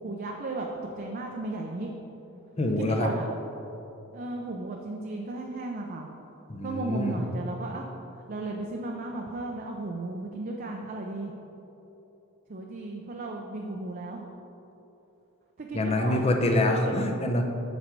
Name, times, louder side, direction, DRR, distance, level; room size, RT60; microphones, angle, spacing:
voice 1, 0.0-1.9 2.6-3.3 4.1-6.1 6.6-7.9 8.3-11.3 12.5-14.3 15.6-16.2 16.7-17.0, right 2 dB, 40° right, 0 dB, 0.6 m, -35 dB
voice 2, 2.6-3.1 6.5-7.2 15.7-17.4, left 1 dB, 30° left, 3 dB, 0.7 m, -25 dB
8.3 x 6.4 x 4.6 m, 3.0 s
head